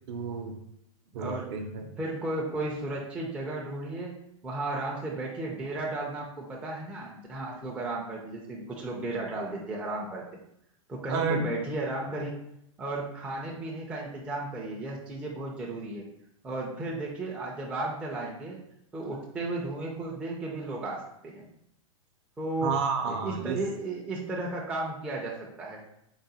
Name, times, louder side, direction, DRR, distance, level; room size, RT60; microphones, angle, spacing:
voice 1, 0.1-0.6 1.1-1.8 11.1-11.4 22.6-23.6, right 5 dB, 50° right, 4 dB, 0.6 m, -30 dB
voice 2, 1.2-1.5 2.0-4.2 4.4-10.3 10.9-12.4 12.8-16.0 16.4-18.6 18.9-21.5 22.4-22.7 23.1-25.8, right 2 dB, 5° right, -3 dB, 0.4 m, -34 dB
3.8 x 2.1 x 4.0 m, 0.78 s
supercardioid pair, 150°, 18 cm